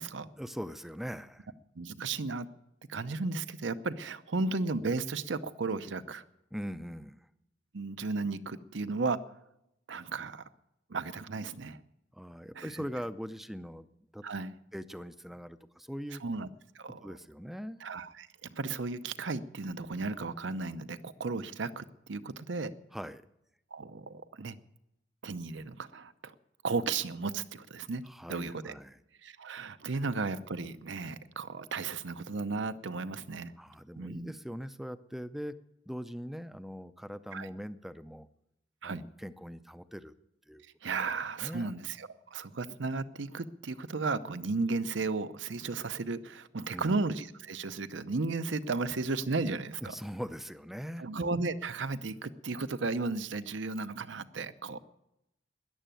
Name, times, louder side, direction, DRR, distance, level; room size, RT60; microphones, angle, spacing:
voice 1, 0.4-1.5 6.5-7.2 12.1-13.9 14.1-14.2 14.7-16.2 17.0-17.8 22.9-23.2 28.0-29.0 33.6-35.6 35.9-38.3 38.8-40.1 40.5-41.1 41.4-41.7 46.7-47.0 49.8-51.0, equal, ahead, 12 dB, 0.5 m, -41 dB
voice 2, 1.8-2.5 2.9-6.2 7.7-9.2 9.9-10.4 10.9-11.8 12.6-12.8 14.2-14.5 16.2-16.5 16.7-17.1 17.8-22.7 23.7-24.6 25.2-26.3 26.6-28.0 28.3-28.7 29.2-33.5 34.0-34.3 37.3-37.5 38.8-39.0 40.8-50.0 51.0-54.8, right 3 dB, 75° right, 12 dB, 0.7 m, -34 dB
13.5 x 10.0 x 9.1 m, 0.86 s
head